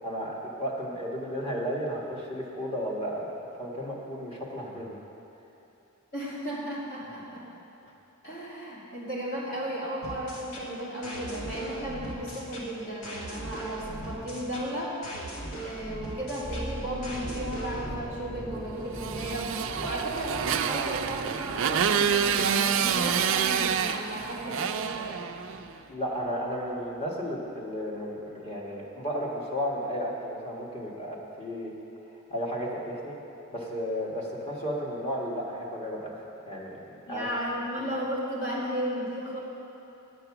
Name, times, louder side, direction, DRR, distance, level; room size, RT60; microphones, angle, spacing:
voice 1, 0.0-5.0 25.8-31.7 32.3-33.1 33.5-36.1 36.5-37.3 37.8-37.9, equal, 30° left, -3 dB, 1.5 m, -33 dB
voice 2, 6.1-7.5 8.2-15.0 15.6-25.2 37.1-39.4, equal, 55° left, -6 dB, 2.6 m, -34 dB
sound 1, 10.0-18.0, right 1 dB, 75° left, 1.5 m, -39 dB
sound 2, 16.4-26.4 26.7-26.9, right 1 dB, 10° left, 1.0 m, -42 dB
Motorcycle, 19.0-25.7, right 7 dB, 60° right, 0.4 m, -27 dB
9.6 x 7.8 x 5.9 m, 2.9 s
head